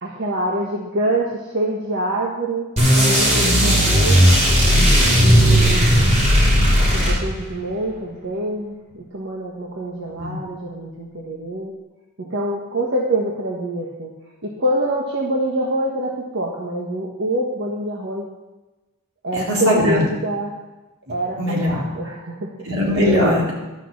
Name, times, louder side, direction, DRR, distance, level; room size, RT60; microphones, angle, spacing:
voice 1, 0.0-4.3 5.2-6.1 6.8-11.7 12.2-14.1 14.4-18.3 19.2-20.5 21.1-22.6, right 1 dB, 55° right, -2 dB, 1.4 m, -25 dB
sound 1, 2.8-7.6, equal, 35° right, 3.3 m, -15 dB
voice 2, 19.3-20.1 21.4-21.8 22.7-23.5, left 1 dB, 80° right, -3 dB, 3.9 m, -19 dB
12.0 x 6.5 x 7.2 m, 1.1 s
head